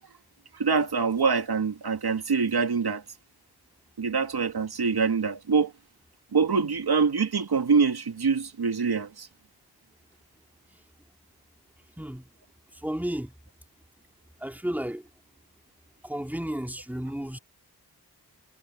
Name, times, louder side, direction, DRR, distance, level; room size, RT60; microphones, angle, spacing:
voice 1, 0.5-3.0 4.0-5.7 6.3-9.3, right 5 dB, 70° right, 2.1 m, -25 dB
voice 2, 12.0-12.3 12.7-13.3 14.4-15.1 16.0-17.4, right 1 dB, 5° right, 2.6 m, -32 dB
cardioid pair, 40°, 40 cm